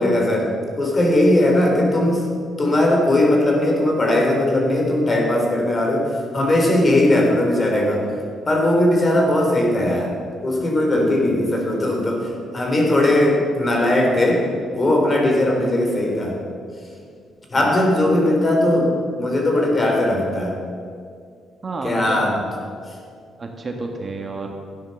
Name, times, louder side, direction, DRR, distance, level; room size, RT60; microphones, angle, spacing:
voice 1, 0.0-2.2 2.6-8.1 8.5-10.1 10.4-14.4 14.7-16.4 17.5-20.6 21.8-22.4, left 1 dB, 30° left, 1 dB, 3.3 m, -19 dB
voice 2, 21.6-22.2 23.4-24.5, right 3 dB, 35° right, 2 dB, 1.6 m, -30 dB
13.0 x 9.5 x 6.4 m, 2.2 s
cardioid pair, 90°, 0 cm